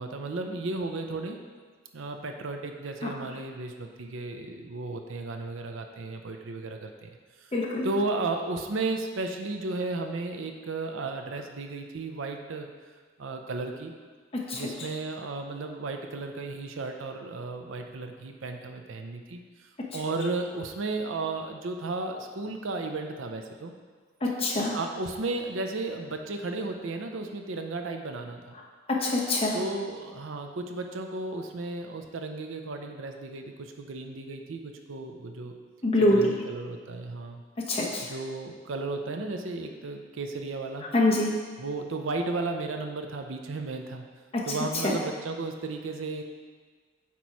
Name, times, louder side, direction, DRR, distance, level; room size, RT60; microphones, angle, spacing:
voice 1, 0.0-1.4 1.9-7.5 7.8-12.7 13.2-13.9 14.5-23.7 24.7-28.5 29.5-35.5 36.1-37.4 38.0-40.9 41.6-44.0 44.4-46.2, right 3 dB, 75° right, 4 dB, 0.6 m, -34 dB
voice 2, 7.5-7.9 14.5-14.6 24.2-24.8 29.0-29.6 35.8-36.2 37.6-38.1 40.9-41.3 44.3-44.4 44.7-45.0, left 2 dB, 30° left, -3 dB, 1.0 m, -25 dB
8.2 x 3.0 x 4.7 m, 1.5 s
head